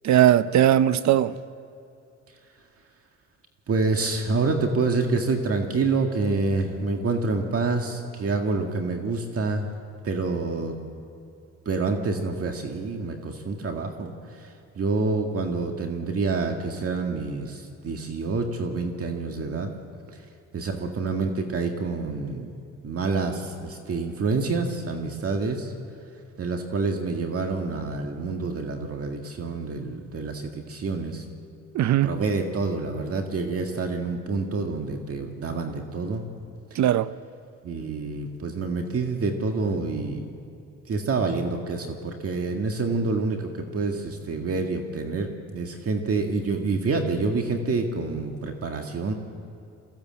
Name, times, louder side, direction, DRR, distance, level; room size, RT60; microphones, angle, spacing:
voice 1, 0.0-1.3 31.7-32.1 36.7-37.1, right 11 dB, 70° right, 0.7 m, -19 dB
voice 2, 3.7-9.7 10.0-10.8 11.7-14.1 14.4-14.5 14.8-19.7 20.5-22.5 22.8-25.7 26.4-31.2 32.0-36.3 37.6-40.3 40.9-43.4 43.7-49.1, right 3 dB, 50° right, 1.9 m, -27 dB
23.0 x 16.0 x 7.6 m
cardioid pair, 90°, 30 cm